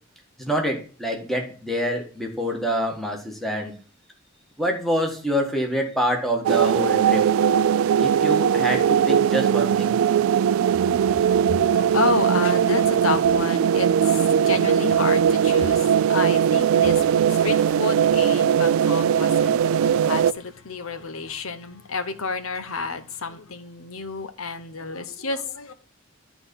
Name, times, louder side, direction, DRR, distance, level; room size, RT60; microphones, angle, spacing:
voice 1, 0.4-3.7 4.6-7.3 8.0-10.0, equal, ahead, 1.5 m, -26 dB
sound 1, 6.5-20.3, right 8 dB, 85° right, 0.3 m, -20 dB
voice 2, 11.6-25.7, left 4 dB, 90° left, 1.0 m, -30 dB
11.0 x 4.1 x 5.3 m
head